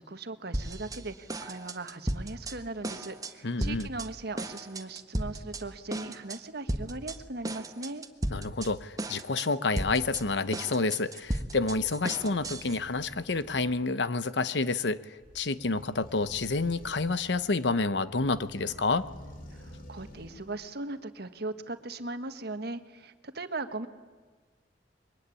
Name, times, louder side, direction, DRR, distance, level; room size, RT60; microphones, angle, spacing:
voice 1, 0.0-8.0 19.5-23.9, right 2 dB, 60° right, 9 dB, 1.5 m, -39 dB
sound 1, 0.5-1.0 1.3-2.5 2.8-3.3 3.6-4.1 4.4-5.6 5.9-6.4 6.7-7.2 7.4-8.7 9.0-9.5 9.8-12.8, right 1 dB, 20° right, 1.3 m, -34 dB
voice 2, 3.4-3.9 8.3-15.0 15.3-19.1, left 3 dB, 70° left, 14 dB, 0.9 m, -29 dB
sound 2, 11.2-20.7, left 1 dB, 55° left, 2.6 m, -51 dB
24.5 x 23.0 x 9.9 m, 1.5 s
head